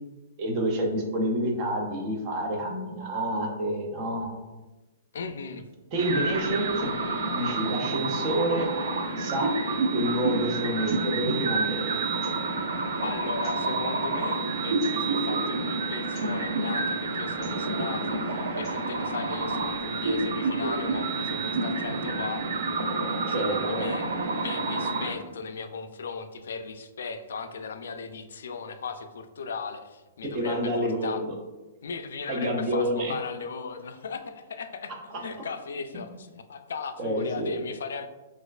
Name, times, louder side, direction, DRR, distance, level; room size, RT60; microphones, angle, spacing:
voice 1, 0.4-4.3 5.9-8.7 9.2-9.5 9.9-12.0 23.3-23.8 30.3-31.3 32.3-33.1 37.0-37.6, equal, 25° right, 1 dB, 0.5 m, -28 dB
voice 2, 5.1-5.7 13.0-22.4 23.1-24.1 24.4-31.2 31.8-38.1, left 5 dB, 90° left, 8 dB, 0.3 m, -37 dB
sound 1, 5.9-25.1, right 3 dB, 85° right, 0.5 m, -29 dB
sound 2, 10.8-11.0 11.3-11.4 12.2-12.5 13.3-13.8 14.8-15.1 16.1-16.3 17.3-17.6 18.4-18.9, equal, 15° left, 1.2 m, -51 dB
4.2 x 2.4 x 2.3 m, 1.1 s
hypercardioid pair, 175°, 0 cm